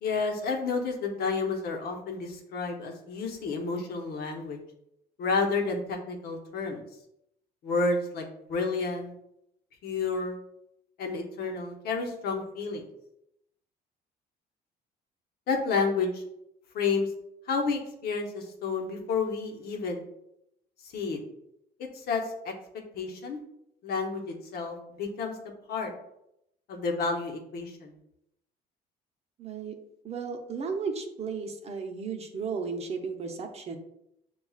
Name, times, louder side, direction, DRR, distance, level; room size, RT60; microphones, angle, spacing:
voice 1, 0.0-4.6 5.2-6.8 7.6-9.1 9.8-10.3 11.0-12.8 15.5-16.2 16.7-17.1 17.5-20.0 20.9-21.2 21.9-22.5 22.9-23.4 23.8-25.4 25.7-25.9 26.7-27.9, left 4 dB, 65° left, 2 dB, 0.9 m, -30 dB
voice 2, 29.4-29.7 30.0-33.8, right 5 dB, 40° right, 4 dB, 0.7 m, -34 dB
6.9 x 2.3 x 2.3 m, 0.80 s
cardioid pair, 110°, 17 cm